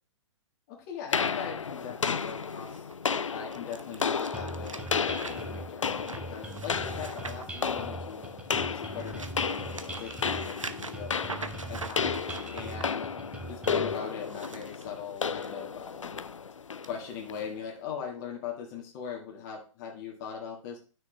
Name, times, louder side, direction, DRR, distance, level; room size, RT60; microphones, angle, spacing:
voice 1, 0.7-2.8 3.3-8.3 8.7-11.3 11.7-13.1 13.5-16.2 16.9-20.8, left 7 dB, 35° left, 0 dB, 1.7 m, -40 dB
sound 1, 1.1-17.5, left 6 dB, 80° left, 0.5 m, -33 dB
sound 2, 2.2-8.3 8.8-12.8 14.1-15.5 15.9-16.2 16.8-16.9, right 3 dB, 90° right, 0.8 m, -44 dB
sound 3, 4.3-13.9, right 2 dB, 5° right, 1.2 m, -41 dB
9.7 x 6.3 x 3.3 m, 0.37 s
figure-of-eight pair, 120°, 16 cm